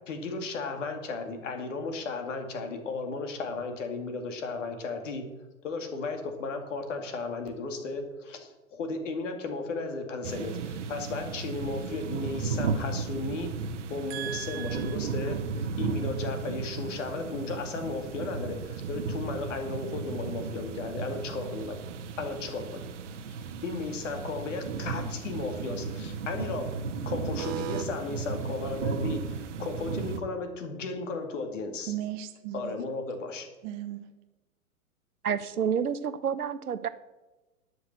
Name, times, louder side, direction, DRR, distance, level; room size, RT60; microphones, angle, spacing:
voice 1, 0.1-5.2 5.6-13.5 13.9-21.8 22.2-22.8 23.6-26.7 27.0-31.9 32.5-33.5, left 3 dB, 55° left, 5 dB, 2.5 m, -35 dB
sound 1, 10.2-30.2, right 5 dB, 55° right, 1.2 m, -35 dB
voice 2, 14.1-14.8 27.4-27.8 31.9-32.7 33.6-34.1, right 12 dB, 15° right, 8 dB, 0.5 m, -36 dB
voice 3, 35.2-36.9, right 7 dB, 80° right, 14 dB, 0.8 m, -29 dB
11.5 x 6.4 x 7.6 m, 1.1 s
figure-of-eight pair, 110°, 44 cm